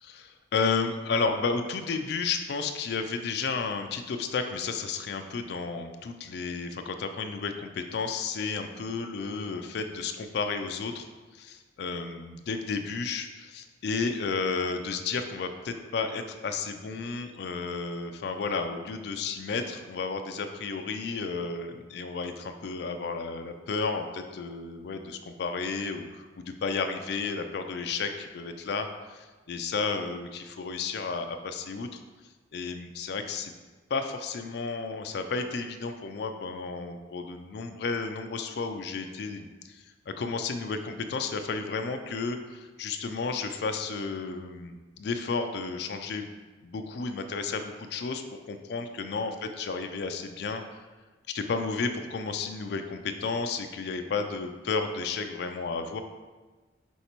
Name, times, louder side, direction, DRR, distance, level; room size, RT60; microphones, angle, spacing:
voice 1, 0.0-32.0 32.5-33.5 33.9-46.3 46.6-50.6 51.3-56.0, left 4 dB, 55° left, 6 dB, 0.3 m, -32 dB
5.4 x 3.2 x 3.0 m, 1.3 s
head